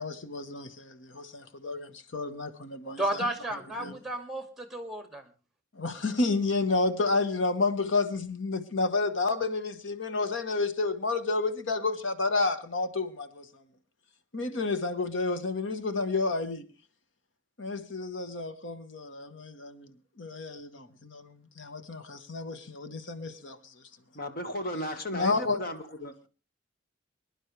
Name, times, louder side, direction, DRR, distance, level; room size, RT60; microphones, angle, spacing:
voice 1, 0.0-3.2 3.8-3.9 5.7-13.6 14.3-16.7 17.6-19.9 20.2-23.6 25.1-25.6, left 3 dB, 80° left, 1.2 m, -30 dB
voice 2, 3.0-5.3, right 1 dB, ahead, 2.0 m, -33 dB
voice 3, 24.1-26.3, left 1 dB, 50° left, 1.6 m, -35 dB
24.0 x 11.0 x 3.3 m
head